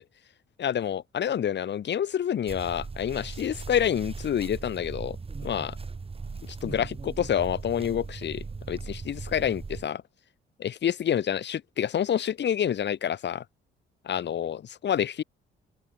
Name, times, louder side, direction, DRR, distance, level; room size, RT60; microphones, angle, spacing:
voice 1, 0.6-5.2 5.4-5.8 6.6-10.0 10.6-13.4 14.1-15.2, left 9 dB, 60° left, 6.8 m, -28 dB
sound 1, 2.5-9.9, right 4 dB, 30° right, 4.0 m, -39 dB
open air
cardioid pair, 90°, 20 cm